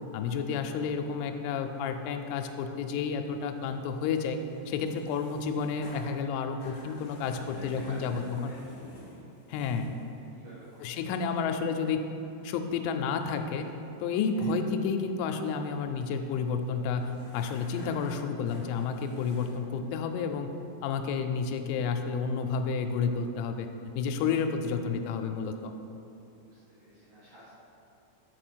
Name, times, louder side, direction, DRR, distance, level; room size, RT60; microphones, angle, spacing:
voice 1, 0.1-4.4 4.7-8.5 9.5-9.9 10.8-12.0 12.4-13.7 14.0-20.5 20.8-23.7 23.9-25.7, left 5 dB, 85° left, 6 dB, 2.9 m, -31 dB
sound 1, 3.3-10.1 10.6-11.6 12.6-19.5, left 1 dB, 65° left, 1.9 m, -51 dB
voice 2, 7.4-8.6 10.3-11.9 14.4-14.5 26.4-27.6, right 1 dB, 75° right, -10 dB, 1.9 m, -51 dB
6.5 x 5.0 x 6.1 m, 2.8 s
omnidirectional pair, 5.9 m